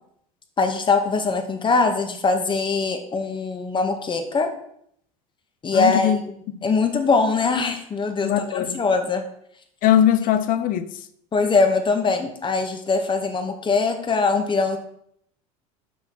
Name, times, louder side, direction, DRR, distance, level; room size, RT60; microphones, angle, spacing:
voice 1, 0.6-4.5 5.6-6.1 6.6-9.2 11.3-14.8, left 4 dB, 25° left, 1.6 m, -22 dB
voice 2, 5.7-6.2 6.5-6.6 8.2-8.8 9.8-10.9, left 10 dB, 50° left, 0.8 m, -20 dB
7.5 x 5.9 x 6.0 m
hypercardioid pair, 90°, 18 cm